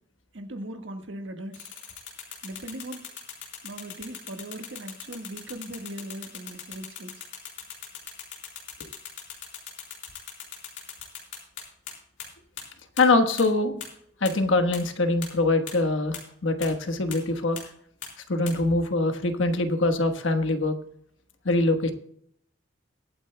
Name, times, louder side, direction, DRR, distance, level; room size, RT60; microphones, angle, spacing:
voice 1, 0.3-1.7 2.4-3.1 3.6-7.2, right 1 dB, 75° right, 5 dB, 1.5 m, -39 dB
sound 1, 1.5-11.9 12.2-12.3 12.6-12.7 13.0-13.1 13.4-13.5 13.8-13.9 14.2-14.3 14.7-14.8 15.2-15.3 15.7-15.8 16.1-16.2 16.6-16.7 17.1-17.2 17.6-17.7 18.0-18.1 18.5-18.6, left 9 dB, 70° left, 3.7 m, -39 dB
voice 2, 13.0-13.8 14.2-17.6 18.3-20.8 21.4-21.9, left 2 dB, 90° left, 7 dB, 1.3 m, -23 dB
22.0 x 9.1 x 2.2 m, 0.69 s
head